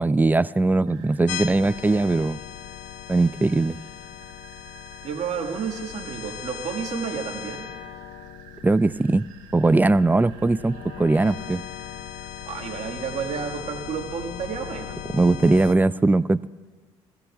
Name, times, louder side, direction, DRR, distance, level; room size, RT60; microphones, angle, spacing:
voice 1, 0.0-2.4 3.1-3.8 8.6-9.3 9.5-11.6 15.1-16.5, right 2 dB, 15° right, 17 dB, 0.4 m, -20 dB
sound 1, 0.9-12.9, right 8 dB, 75° right, 1.7 m, -50 dB
sound 2, 1.3-15.7, left 11 dB, 75° left, 0.7 m, -38 dB
voice 2, 5.0-7.7 12.5-15.0, right 7 dB, 55° right, 3 dB, 1.7 m, -31 dB
23.0 x 15.5 x 2.3 m, 1.5 s
supercardioid pair, 60°, 13 cm